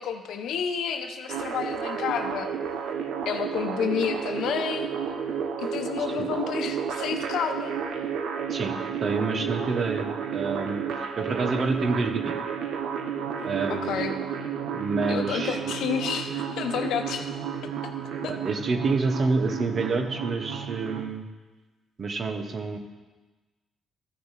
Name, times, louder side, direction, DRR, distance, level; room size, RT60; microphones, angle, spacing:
voice 1, 0.0-2.5 3.3-4.9 5.6-7.7 13.4-14.1 15.1-17.3 17.8-17.9 18.2-18.3, left 7 dB, 80° left, 6 dB, 0.8 m, -30 dB
sound 1, 1.3-21.0, right 7 dB, 80° right, 0.7 m, -32 dB
voice 2, 9.0-10.1 10.3-12.4 13.4-14.1 14.7-15.7 18.3-21.3 22.0-22.8, right 3 dB, 45° right, 6 dB, 1.0 m, -28 dB
14.0 x 5.6 x 4.1 m, 1.2 s
cardioid pair, 90°, 0 cm